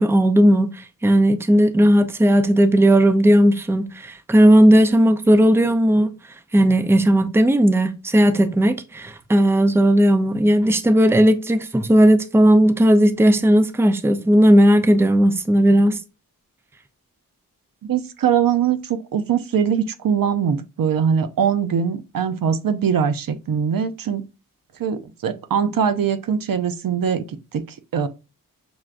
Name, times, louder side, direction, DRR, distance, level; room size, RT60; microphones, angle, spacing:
voice 1, 0.0-6.1 6.5-16.0, equal, 5° right, 0.4 m, -16 dB
voice 2, 17.8-24.2 24.8-27.2 27.5-27.6 27.9-28.1, right 7 dB, 70° right, 0.5 m, -22 dB
6.0 x 2.2 x 2.4 m
wide cardioid pair, 65°, 35 cm